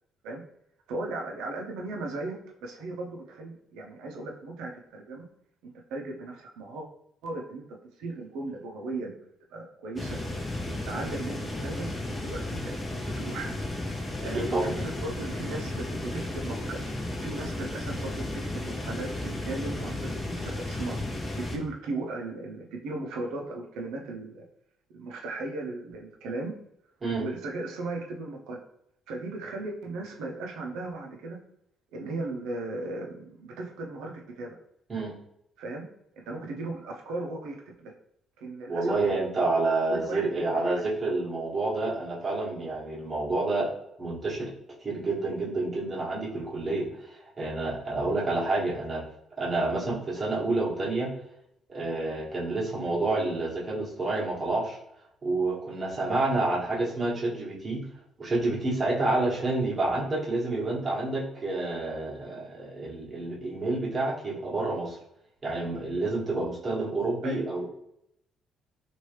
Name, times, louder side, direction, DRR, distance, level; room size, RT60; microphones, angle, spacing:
voice 1, 0.9-5.3 5.6-6.9 7.2-7.6 8.0-9.1 9.5-10.2 10.5-13.5 14.2-18.1 18.5-21.0 21.4-24.4 24.9-26.5 27.2-28.6 29.1-31.4 31.9-34.6 35.6-35.9 36.2-37.9 38.4-39.0 39.9-40.7 67.2-67.4, right 2 dB, 90° right, 1 dB, 0.6 m, -37 dB
sound 1, 10.0-21.6, left 1 dB, 20° left, 0.6 m, -34 dB
voice 2, 14.2-14.7 27.0-27.3 34.9-35.2 38.7-43.7 44.0-44.5 44.8-49.0 49.4-51.1 51.7-54.8 55.2-57.8 58.2-65.0 65.4-67.7, right 2 dB, 30° right, -4 dB, 1.1 m, -29 dB
3.1 x 2.6 x 3.1 m, 0.78 s
cardioid pair, 100°, 0 cm